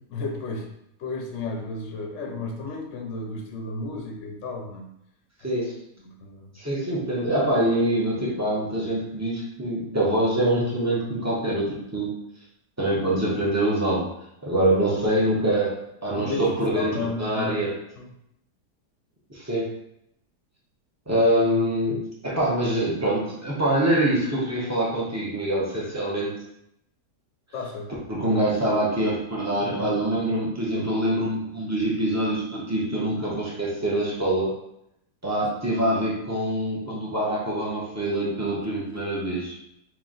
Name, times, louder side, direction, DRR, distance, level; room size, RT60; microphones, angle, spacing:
voice 1, 0.1-0.7 1.0-4.9 5.4-5.5 6.0-6.5 16.1-16.5 16.8-17.7 18.0-18.1 27.5-27.9 28.2-28.5 29.6-30.1 30.7-31.2, left 3 dB, 60° left, 1 dB, 0.8 m, -33 dB
voice 2, 6.6-12.2 12.8-14.1 14.4-17.7 19.3-19.7 21.1-26.3 28.1-34.5 35.2-39.6, right 1 dB, 20° right, -6 dB, 0.4 m, -25 dB
3.1 x 3.0 x 3.8 m, 0.79 s
omnidirectional pair, 1.8 m